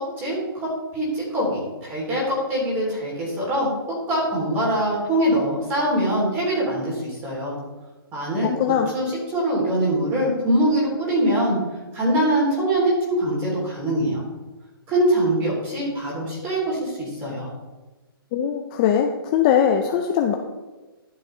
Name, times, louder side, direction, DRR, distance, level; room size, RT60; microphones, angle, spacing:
voice 1, 0.2-7.6 8.1-8.5 8.9-11.6 11.9-14.2 14.9-17.5, right 1 dB, 20° right, -4 dB, 3.2 m, -23 dB
voice 2, 8.6-8.9 18.3-20.4, left 9 dB, 20° left, 3 dB, 0.4 m, -20 dB
11.5 x 7.2 x 3.2 m, 1.2 s
hypercardioid pair, 160°, 13 cm